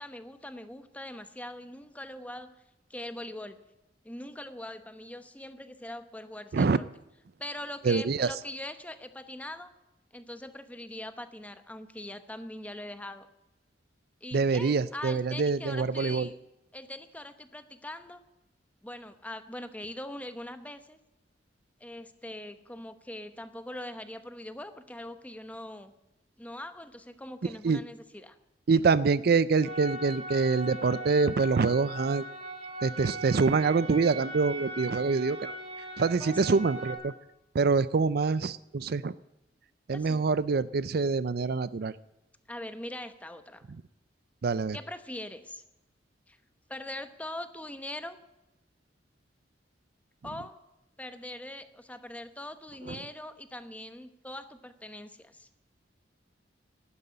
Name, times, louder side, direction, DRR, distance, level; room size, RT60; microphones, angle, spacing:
voice 1, 0.0-2.6 2.9-3.6 4.0-6.9 7.4-9.7 10.1-13.3 14.2-16.3 16.7-18.2 18.8-21.0 21.8-25.9 26.4-28.3 36.2-36.6 39.9-40.2 42.5-43.7 44.7-45.6 46.3-46.4 46.7-48.2 50.2-50.6 51.0-55.5, left 1 dB, 10° left, 9 dB, 0.9 m, -42 dB
voice 2, 7.8-8.3 14.3-16.3 27.6-27.8 28.7-32.2 32.8-35.6 36.0-37.1 37.5-39.1 39.9-41.9 44.4-44.8 52.9-53.0, right 4 dB, 55° right, 17 dB, 0.4 m, -25 dB
sound 1, 29.6-36.9, right 1 dB, 35° right, 4.8 m, -39 dB
12.0 x 9.7 x 9.6 m, 0.92 s
head